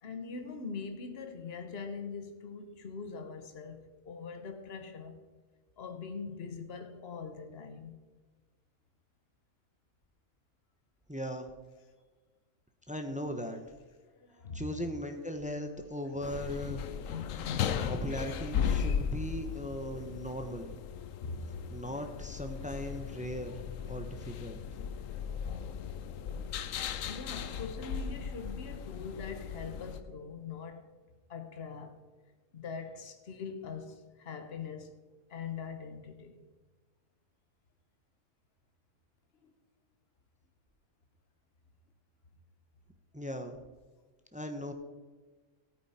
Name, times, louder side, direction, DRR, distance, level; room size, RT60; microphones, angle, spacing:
voice 1, 0.0-5.2 5.8-8.0 14.2-14.6 21.2-21.5 26.8-30.8 31.3-32.0 32.5-34.9 35.3-36.4 39.4-39.5, left 5 dB, 50° left, 1.3 m, -42 dB
voice 2, 11.1-11.5 12.9-13.6 14.5-16.8 17.8-20.7 21.7-23.6 23.8-24.6 43.1-43.6 44.3-44.7, equal, 5° right, 0.9 m, -38 dB
sound 1, 16.2-30.0, left 7 dB, 90° left, 1.1 m, -37 dB
14.5 x 9.0 x 4.3 m
omnidirectional pair, 1.3 m